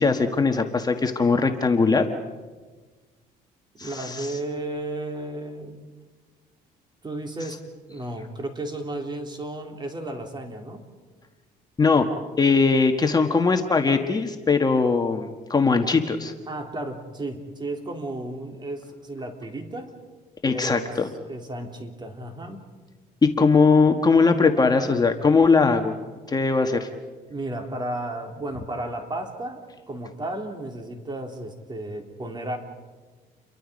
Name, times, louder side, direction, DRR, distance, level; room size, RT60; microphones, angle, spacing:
voice 1, 0.0-2.1 3.8-4.4 11.8-12.1 12.4-16.3 20.4-21.1 23.2-25.9 26.3-26.9, left 4 dB, 25° left, 5 dB, 1.4 m, -20 dB
voice 2, 3.8-5.8 7.0-10.8 16.5-20.0 20.5-21.0 21.3-22.6 27.3-32.6, right 1 dB, 25° right, 4 dB, 3.6 m, -33 dB
29.0 x 23.5 x 5.3 m, 1.3 s
cardioid pair, 110°, 17 cm